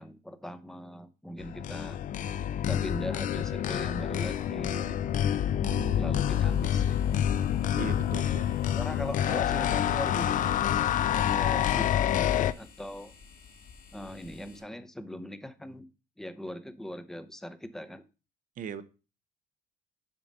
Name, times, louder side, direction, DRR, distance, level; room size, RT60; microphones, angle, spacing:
voice 1, 0.0-2.0 2.6-5.1 6.0-7.2 8.8-10.8 11.1-13.1 13.9-15.9 16.2-18.0, equal, 5° left, 10 dB, 0.7 m, -40 dB
sound 1, 1.4-12.5, left 10 dB, 50° left, 0.4 m, -27 dB
voice 2, 5.6-6.2 7.7-8.5 18.6-18.8, right 7 dB, 50° right, 12 dB, 0.8 m, -39 dB
sound 2, 6.3-14.6, left 5 dB, 75° left, 3.4 m, -53 dB
7.4 x 4.0 x 5.2 m, 0.32 s
cardioid pair, 110°, 17 cm